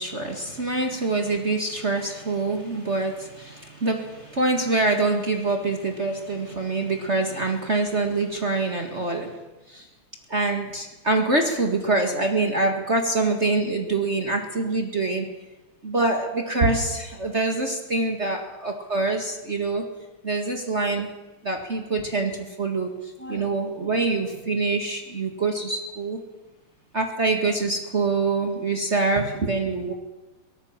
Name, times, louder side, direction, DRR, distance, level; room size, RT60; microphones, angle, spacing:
voice 1, 0.0-9.3 9.7-9.8 10.3-15.3 15.8-19.8 20.2-21.1 21.4-22.9 23.2-26.2 26.9-29.9, right 3 dB, 30° right, 3 dB, 2.1 m, -25 dB
23.5 x 18.5 x 7.4 m, 1.1 s
omnidirectional pair, 2.4 m